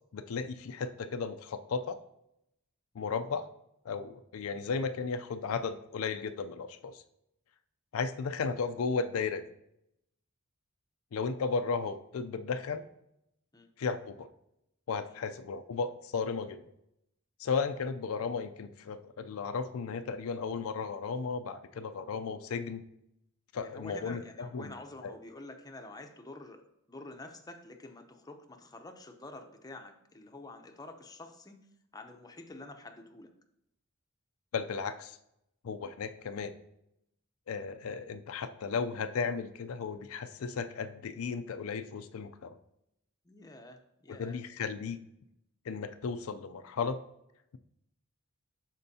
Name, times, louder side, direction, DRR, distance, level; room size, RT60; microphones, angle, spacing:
voice 1, 0.1-2.0 3.0-3.5 3.8-7.0 7.9-9.4 11.1-12.8 13.8-14.3 14.9-16.6 17.4-22.8 23.5-24.2 24.5-24.7 25.0-25.1 34.5-35.2 35.6-36.5 37.5-42.6 44.1-45.0 45.7-47.0, left 5 dB, 75° left, 9 dB, 0.4 m, -35 dB
voice 2, 14.9-15.2 23.6-26.6 26.9-31.6 31.9-33.3 43.2-44.4, left 2 dB, 20° left, 4 dB, 0.6 m, -48 dB
12.0 x 4.4 x 2.7 m, 0.80 s
head